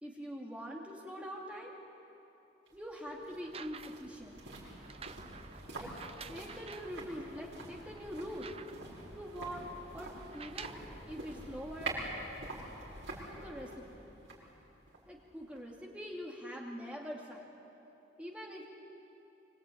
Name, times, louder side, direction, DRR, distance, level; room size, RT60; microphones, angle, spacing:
voice 1, 0.0-1.7 2.7-4.4 5.8-5.9 6.3-8.5 9.1-9.7 9.9-10.8 11.1-12.0 13.3-14.0 15.1-17.5 18.2-18.7, equal, 5° right, -2 dB, 2.5 m, -44 dB
sound 1, 2.7-15.8 16.1-16.2, right 2 dB, 80° right, 6.5 m, -46 dB
sound 2, 3.3-4.2 4.8-7.0 7.6-7.7 8.0-9.0 10.2-10.9 11.9-12.0, right 6 dB, 30° right, 0.7 m, -50 dB
25.5 x 25.0 x 9.2 m, 2.9 s
head